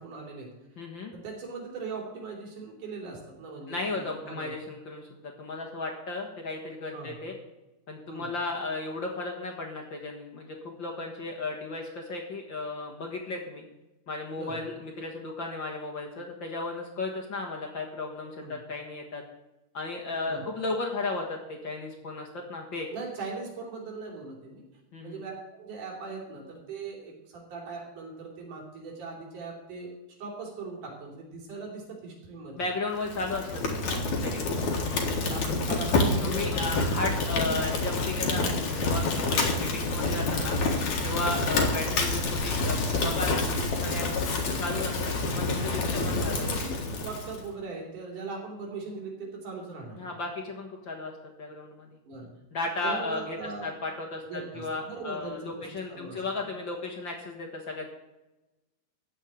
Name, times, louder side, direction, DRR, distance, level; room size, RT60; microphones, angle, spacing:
voice 1, 0.0-0.8 1.1-4.5 6.9-7.2 8.1-8.3 14.4-14.6 18.4-18.6 20.2-20.5 22.9-24.6 25.0-29.9 30.2-32.7 33.8-34.0 34.6-34.7 35.3-36.7 41.2-41.4 45.8-45.9 46.3-50.2 52.1-52.3 52.8-53.7 54.2-56.2, right 4 dB, 85° right, -1 dB, 4.6 m, -40 dB
voice 2, 0.8-1.1 3.7-7.3 7.9-13.6 14.1-19.2 19.7-22.9 24.9-25.2 32.6-33.8 34.2-34.4 36.2-40.6 41.0-44.1 44.3-46.6 50.0-51.1 51.4-51.9 52.5-53.4 53.6-57.9, left 3 dB, 45° left, 0 dB, 2.0 m, -35 dB
Fire, 33.0-47.4, left 3 dB, 75° left, 3.1 m, -28 dB
14.5 x 5.5 x 8.9 m, 1.0 s
omnidirectional pair, 3.5 m